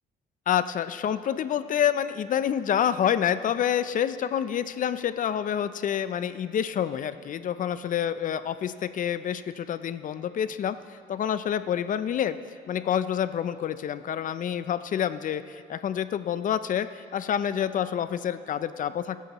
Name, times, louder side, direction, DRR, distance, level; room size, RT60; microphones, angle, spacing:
voice 1, 0.5-12.4 12.7-19.2, left 9 dB, 45° left, 13 dB, 0.5 m, -28 dB
23.5 x 8.3 x 3.0 m, 2.4 s
cardioid pair, 100°, 18 cm